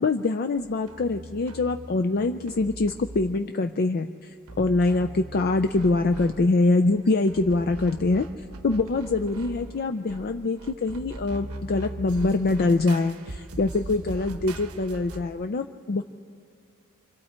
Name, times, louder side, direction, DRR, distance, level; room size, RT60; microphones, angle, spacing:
voice 1, 0.0-8.3 8.6-16.0, left 3 dB, 45° left, 7 dB, 0.4 m, -24 dB
sound 1, 0.6-3.7 4.5-15.3, right 2 dB, 80° right, 0.9 m, -41 dB
27.5 x 24.5 x 4.4 m, 2.3 s
head